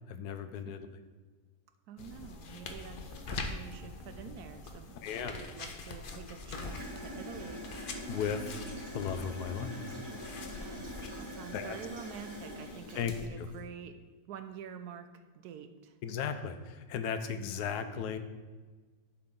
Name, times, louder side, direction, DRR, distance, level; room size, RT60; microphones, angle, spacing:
voice 1, 0.1-0.8 5.0-5.4 8.1-8.6 8.9-9.9 11.5-11.8 12.9-13.5 16.0-18.2, left 7 dB, 85° left, 9 dB, 1.2 m, -36 dB
voice 2, 1.9-7.6 10.6-10.9 11.2-16.0, right 8 dB, 80° right, 9 dB, 1.1 m, -47 dB
sound 1, 2.0-13.3, left 3 dB, 55° left, 0.6 m, -44 dB
Gurgling / Toilet flush, 6.5-13.6, equal, 35° right, 3.2 m, -44 dB
11.5 x 4.8 x 3.7 m, 1.4 s
omnidirectional pair, 1.7 m